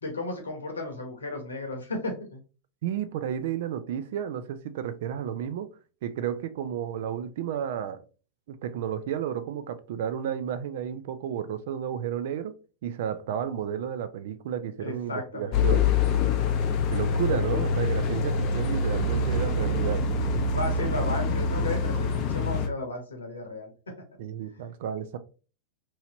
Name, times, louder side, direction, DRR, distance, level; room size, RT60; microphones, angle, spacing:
voice 1, 0.0-2.4 14.8-15.7 20.5-23.7 24.6-24.7, left 2 dB, 70° left, 0.9 m, -34 dB
voice 2, 2.8-5.7 6.0-8.0 8.5-12.5 12.8-15.9 16.9-20.1 24.2-25.2, right 9 dB, 55° right, 0.3 m, -32 dB
sound 1, 15.5-22.7, left 4 dB, 40° left, 0.5 m, -25 dB
3.0 x 2.7 x 2.8 m
figure-of-eight pair, 90°, 0 cm